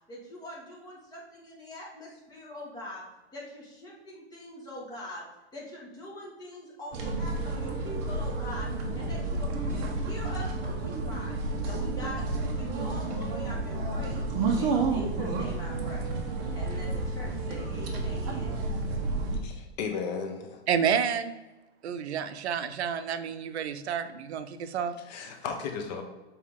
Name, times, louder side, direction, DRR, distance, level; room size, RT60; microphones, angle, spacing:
voice 1, 0.1-3.1 3.3-5.3 5.5-14.3 14.6-16.1 16.5-18.7, left 1 dB, 10° left, 1.8 m, -43 dB
sound 1, 6.9-19.4, right 3 dB, 30° right, 1.0 m, -31 dB
voice 2, 19.3-20.6 25.0-26.0, left 5 dB, 40° left, 0.9 m, -35 dB
voice 3, 20.7-21.4 21.8-24.9, right 7 dB, 75° right, 0.7 m, -29 dB
7.0 x 4.5 x 3.6 m
hypercardioid pair, 155°, 33 cm